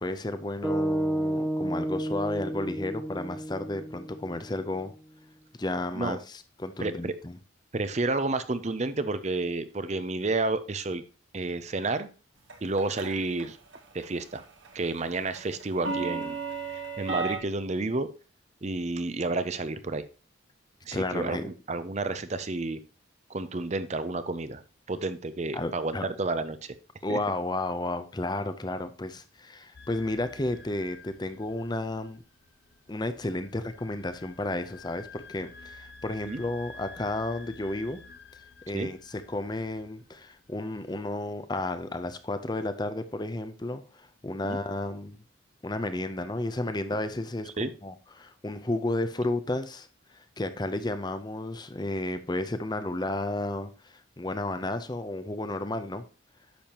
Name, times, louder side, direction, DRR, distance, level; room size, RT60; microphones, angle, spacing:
voice 1, 0.0-4.9 5.6-7.4 20.9-21.5 25.5-26.0 27.0-32.2 32.9-38.0 38.7-45.2 45.6-56.0, left 2 dB, 20° left, 0.6 m, -32 dB
sound 1, 0.6-4.9, right 1 dB, 5° right, 1.4 m, -31 dB
voice 2, 6.8-7.1 7.7-11.0 11.3-12.1 12.6-13.6 13.9-14.4 14.7-16.4 16.7-18.1 18.6-20.0 20.8-22.8 23.3-24.6 24.9-26.8 27.1-27.2 36.3-36.4 38.7-38.9 44.4-44.6 47.6-47.7, right 3 dB, 35° right, 0.5 m, -30 dB
sound 2, 12.5-13.5 13.7-14.1 14.4-17.4, right 4 dB, 70° right, 1.4 m, -33 dB
sound 3, 29.7-41.0, left 3 dB, 50° left, 0.9 m, -50 dB
10.5 x 7.0 x 2.9 m
head